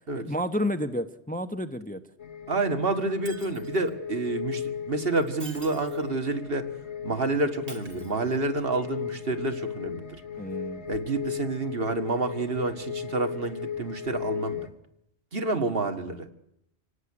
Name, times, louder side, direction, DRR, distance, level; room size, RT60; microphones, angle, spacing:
voice 1, 0.2-2.0 10.4-10.8, equal, 10° left, 9 dB, 1.0 m, -30 dB
sound 1, 2.2-14.7, left 8 dB, 80° left, 1.7 m, -36 dB
voice 2, 2.5-6.7 7.0-10.2 10.9-14.7 15.3-16.3, right 3 dB, 60° right, 7 dB, 2.1 m, -29 dB
Shatter, 3.2-3.9 5.1-6.1 7.7-8.7 10.9-11.0, right 3 dB, 75° right, 3.7 m, -47 dB
26.0 x 17.0 x 9.9 m, 0.80 s
omnidirectional pair, 1.1 m